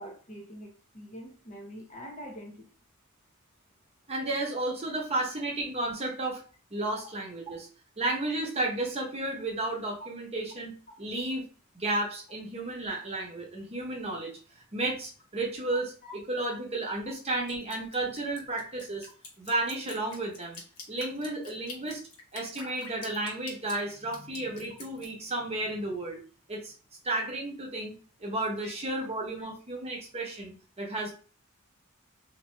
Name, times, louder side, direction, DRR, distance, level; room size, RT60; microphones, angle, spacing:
voice 1, 0.0-2.6 16.0-16.1 29.4-29.5, equal, 35° left, 0 dB, 0.9 m, -44 dB
voice 2, 4.1-6.4 6.7-7.7 8.0-11.5 11.7-14.3 14.7-15.9 16.3-19.1 19.4-20.6 20.9-22.0 22.3-26.2 26.5-26.7 27.0-27.9 28.2-30.5 30.8-31.1, right 2 dB, 30° right, -2 dB, 1.0 m, -32 dB
Drip, 17.5-25.1, left 3 dB, 75° left, 1.0 m, -46 dB
3.1 x 2.8 x 3.2 m, 0.38 s
head